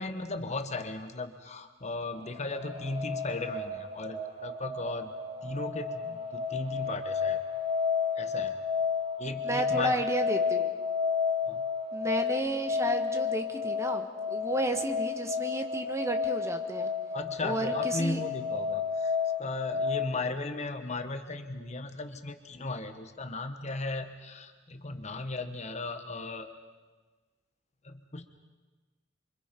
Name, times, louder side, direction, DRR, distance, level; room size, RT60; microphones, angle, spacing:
voice 1, 0.0-5.1 5.4-7.4 8.2-8.6 9.2-10.0 11.4-11.6 17.1-19.1 19.4-26.5 27.8-28.3, left 2 dB, 35° left, 7 dB, 1.2 m, -36 dB
sound 1, 2.0-20.1, left 5 dB, 30° right, 3.1 m, -32 dB
voice 2, 9.4-10.7 11.9-16.9 17.4-18.2, right 1 dB, 15° right, 6 dB, 1.5 m, -32 dB
27.5 x 24.5 x 5.3 m, 1.3 s
head